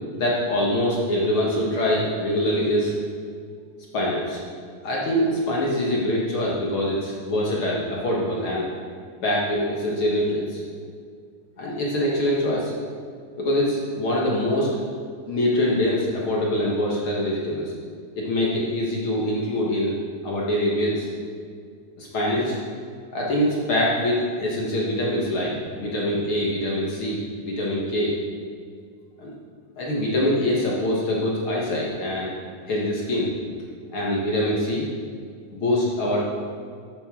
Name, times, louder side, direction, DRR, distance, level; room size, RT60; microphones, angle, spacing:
voice 1, 0.1-3.0 3.9-4.4 4.8-8.7 9.2-10.6 11.6-12.7 13.4-14.8 15.3-17.7 18.2-19.9 20.2-21.1 22.0-22.6 23.1-28.1 29.2-29.3 29.8-32.4 32.7-33.3 33.9-34.9 35.5-36.3, left 1 dB, 50° left, -4 dB, 1.8 m, -24 dB
12.5 x 8.8 x 3.7 m, 2.1 s
omnidirectional pair, 3.7 m